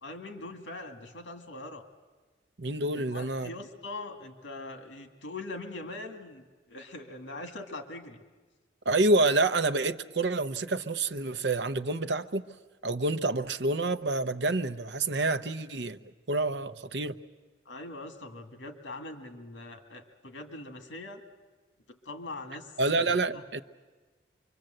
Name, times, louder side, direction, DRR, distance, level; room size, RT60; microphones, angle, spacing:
voice 1, 0.0-1.8 3.1-8.2 15.3-15.4 17.7-21.2 21.9-23.4, left 2 dB, 85° left, 1.9 m, -42 dB
voice 2, 2.6-3.5 8.9-12.4 12.8-16.0 16.3-17.1 22.8-23.6, right 2 dB, 70° right, 0.8 m, -28 dB
25.0 x 24.0 x 7.8 m
head